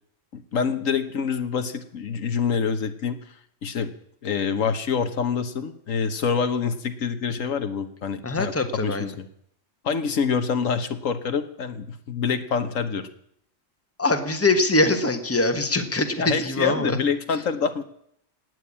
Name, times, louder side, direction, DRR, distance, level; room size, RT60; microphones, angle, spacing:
voice 1, 0.3-3.2 3.6-3.9 4.2-9.2 9.8-13.1 16.2-17.8, left 6 dB, 80° left, 9 dB, 1.6 m, -26 dB
voice 2, 8.2-9.1 14.0-17.0, left 2 dB, 10° left, 7 dB, 1.4 m, -23 dB
17.5 x 9.3 x 8.6 m, 0.70 s
omnidirectional pair, 1.4 m